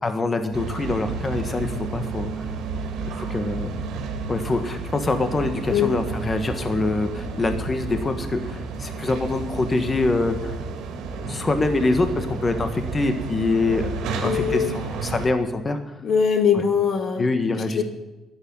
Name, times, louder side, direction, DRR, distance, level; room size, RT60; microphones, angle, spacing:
voice 1, 0.0-2.3 3.2-3.7 4.3-10.6 11.2-13.9 14.2-16.0 17.2-17.8, left 3 dB, 30° left, 7 dB, 1.6 m, -24 dB
sound 1, 0.5-15.3, right 4 dB, 90° right, 2.0 m, -31 dB
voice 2, 14.2-14.8 16.0-17.3 17.7-17.8, left 7 dB, 60° left, 7 dB, 1.7 m, -21 dB
11.5 x 8.9 x 8.8 m, 1.1 s
cardioid pair, 90°, 0 cm